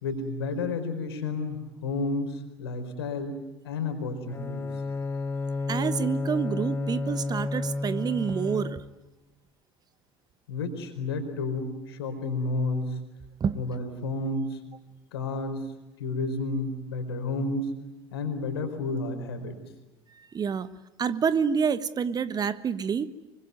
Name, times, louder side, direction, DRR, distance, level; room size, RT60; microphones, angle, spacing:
voice 1, 0.0-3.3 3.6-4.7 10.5-13.0 13.5-14.6 15.1-15.7 16.0-17.7 18.1-19.6, left 3 dB, 70° left, 7 dB, 4.6 m, -31 dB
Bowed string instrument, 4.3-9.1, left 3 dB, 15° left, 1.8 m, -31 dB
voice 2, 5.7-8.8 13.4-13.6 20.3-20.7 21.0-23.1, right 6 dB, 30° right, 14 dB, 1.3 m, -27 dB
25.5 x 24.5 x 9.6 m, 1.0 s
figure-of-eight pair, 65°, 14 cm